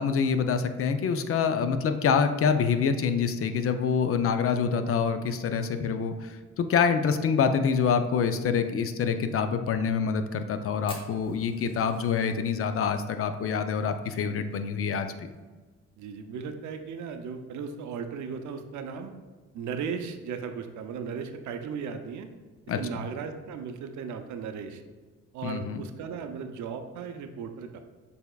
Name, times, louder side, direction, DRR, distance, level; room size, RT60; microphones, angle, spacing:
voice 1, 0.0-15.1 22.7-22.8 25.4-25.8, left 6 dB, 50° left, 9 dB, 0.4 m, -26 dB
Fire, 10.9-15.4 15.6-15.7 16.0-16.1 16.5-16.9 17.4-17.5 18.5-18.7, left 1 dB, 15° left, 1.1 m, -49 dB
voice 2, 16.0-19.1 19.5-22.3 22.8-24.8 25.3-27.8, right 6 dB, 70° right, 7 dB, 0.6 m, -36 dB
6.7 x 3.5 x 2.3 m, 1.3 s
cardioid pair, 90°, 30 cm